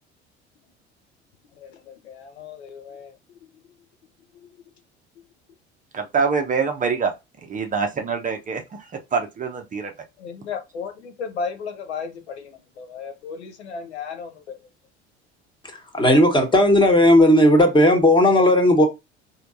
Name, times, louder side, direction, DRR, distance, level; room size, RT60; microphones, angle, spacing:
voice 1, 1.6-3.1 3.4-3.5 4.3-4.5 10.2-14.6, left 5 dB, 70° left, 0.8 m, -35 dB
voice 2, 5.9-7.1 7.5-8.9 9.1-9.9, right 5 dB, 25° right, 0.7 m, -24 dB
voice 3, 15.9-18.9, left 1 dB, 15° left, 1.3 m, -15 dB
4.4 x 2.8 x 2.5 m
figure-of-eight pair, 65°, 34 cm